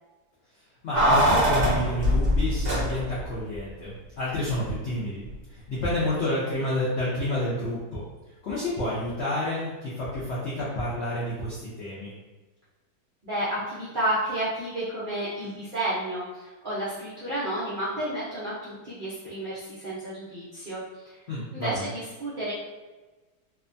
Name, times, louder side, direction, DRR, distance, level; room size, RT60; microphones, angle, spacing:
voice 1, 0.8-8.1 8.4-12.1 21.3-21.9, left 1 dB, 75° left, -7 dB, 0.6 m, -29 dB
Keys jangling, 0.9-3.3 3.5-3.6, equal, 35° right, 1.2 m, -22 dB
voice 2, 13.2-21.2 21.5-22.5, right 1 dB, 50° right, -12 dB, 0.6 m, -31 dB
2.8 x 2.2 x 2.6 m, 1.2 s
omnidirectional pair, 1.8 m